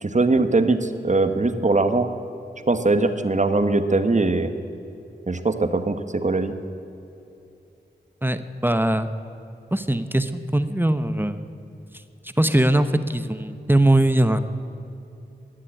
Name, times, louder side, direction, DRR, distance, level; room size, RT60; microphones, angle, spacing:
voice 1, 0.0-2.1 2.7-4.5 5.3-6.6, right 3 dB, 40° right, 9 dB, 1.1 m, -21 dB
voice 2, 8.2-9.1 9.7-11.5 12.2-14.4, right 1 dB, 10° right, 10 dB, 0.8 m, -21 dB
20.0 x 7.5 x 8.6 m, 2.9 s
cardioid pair, 40°, 19 cm